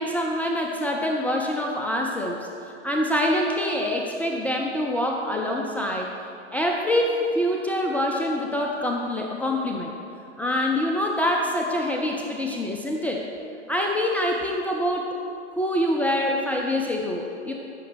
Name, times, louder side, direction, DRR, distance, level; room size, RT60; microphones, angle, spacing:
voice 1, 0.0-6.1 6.5-9.9 10.4-13.2 13.7-15.2 15.6-17.5, left 1 dB, 5° left, 0 dB, 0.3 m, -25 dB
14.5 x 6.0 x 6.2 m, 2.7 s
figure-of-eight pair, 100°, 35 cm